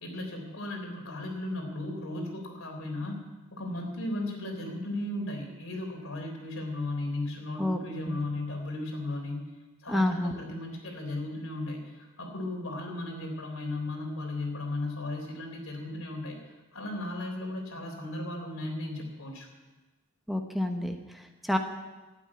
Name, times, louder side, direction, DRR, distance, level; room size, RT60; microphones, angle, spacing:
voice 1, 0.0-3.2 3.5-9.5 9.8-16.4 16.7-19.5, left 2 dB, 70° left, 2 dB, 3.5 m, -35 dB
voice 2, 9.9-10.4 20.3-21.6, left 1 dB, ahead, 4 dB, 0.9 m, -29 dB
12.5 x 9.0 x 9.6 m, 1.2 s
head